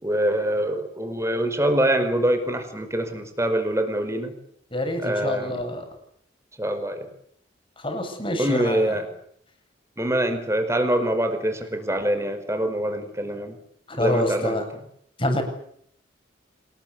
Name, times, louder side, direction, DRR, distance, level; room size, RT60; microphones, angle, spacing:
voice 1, 0.0-4.3 5.0-5.6 6.6-7.1 8.4-9.0 10.0-13.6 14.0-14.6, right 1 dB, 15° right, 8 dB, 5.1 m, -24 dB
voice 2, 4.7-5.8 7.8-8.9 13.9-14.7 15.2-15.4, left 1 dB, 25° left, 4 dB, 7.9 m, -26 dB
27.0 x 21.0 x 8.6 m, 0.68 s
head